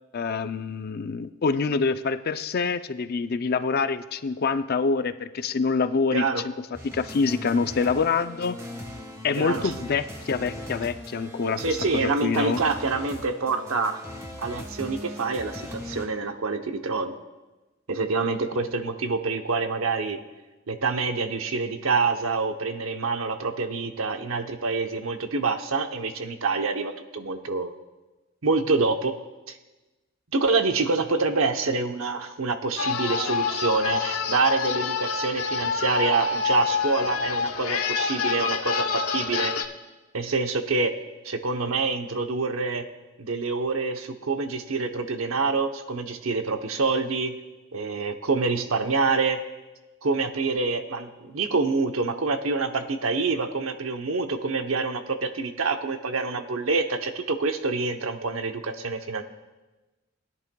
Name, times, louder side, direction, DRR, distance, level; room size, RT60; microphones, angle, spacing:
voice 1, 0.1-6.2 6.6-8.6 9.2-12.6, left 4 dB, 45° left, 11 dB, 0.4 m, -26 dB
voice 2, 6.1-6.4 9.4-9.7 11.6-14.0 14.4-17.1 17.9-20.2 20.7-27.7 28.4-29.2 29.5-29.6 30.3-39.5 40.1-40.9 41.2-42.9 43.2-47.4 47.7-49.4 50.0-59.2, right 4 dB, 75° right, 7 dB, 0.8 m, -26 dB
sound 1, 6.7-16.1, left 1 dB, 15° right, 1.4 m, -39 dB
sound 2, 32.8-39.6, left 5 dB, 80° left, 0.8 m, -27 dB
19.5 x 10.5 x 2.3 m, 1.1 s
head